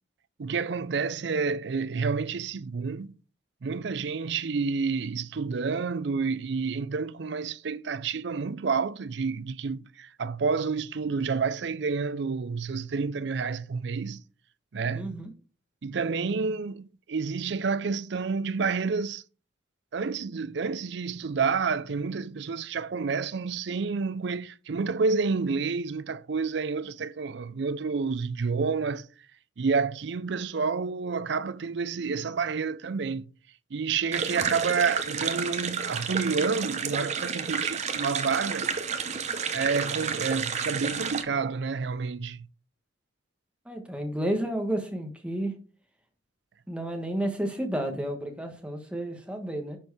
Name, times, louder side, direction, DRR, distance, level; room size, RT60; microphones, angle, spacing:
voice 1, 0.4-3.2 3.6-14.2 14.7-15.2 15.8-19.2 19.9-29.1 29.6-33.3 33.7-38.7 39.5-42.5, right 5 dB, 60° right, 0.4 m, -29 dB
voice 2, 14.9-15.3 43.6-45.5 46.7-49.8, right 1 dB, 5° right, 1.3 m, -31 dB
sound 1, 34.1-41.2, right 6 dB, 35° right, 0.8 m, -31 dB
10.0 x 4.5 x 4.8 m
head